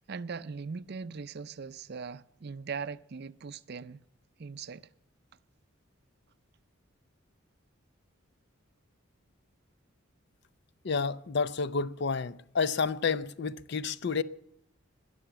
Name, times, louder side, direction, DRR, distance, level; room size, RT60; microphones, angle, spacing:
voice 1, 0.0-4.0 4.4-4.9, right 5 dB, 50° right, 0.5 m, -40 dB
voice 2, 10.8-14.2, left 5 dB, 55° left, 0.6 m, -30 dB
20.5 x 7.0 x 9.9 m
head